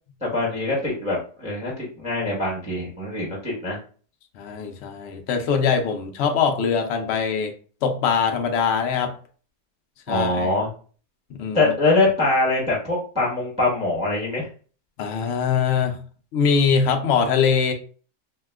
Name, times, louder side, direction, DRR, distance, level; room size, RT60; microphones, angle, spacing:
voice 1, 0.2-3.8 10.1-10.7 11.5-14.5, left 2 dB, 5° right, -3 dB, 0.7 m, -23 dB
voice 2, 4.4-7.5 7.8-9.1 10.1-10.5 11.3-11.7 15.0-16.0 16.3-17.7, left 6 dB, 85° left, 4 dB, 0.5 m, -22 dB
2.8 x 2.2 x 3.4 m, 0.41 s
omnidirectional pair, 1.7 m